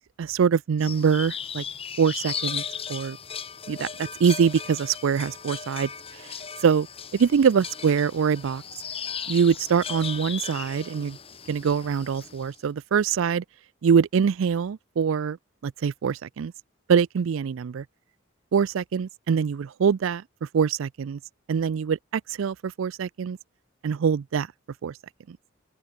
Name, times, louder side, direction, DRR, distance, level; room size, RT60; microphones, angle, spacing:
voice 1, 0.2-1.6 2.0-2.6 2.9-3.2 3.7-5.9 6.6-6.9 7.1-8.6 9.3-11.2 11.5-13.4 13.8-15.4 15.6-16.5 16.9-17.8 18.5-20.2 20.5-21.2 21.5-23.4 23.8-24.5 24.8-24.9 25.3-25.4, right 6 dB, 75° right, 0.4 m, -24 dB
sound 1, 0.8-12.5, left 7 dB, 25° left, 1.6 m, -37 dB
open air
head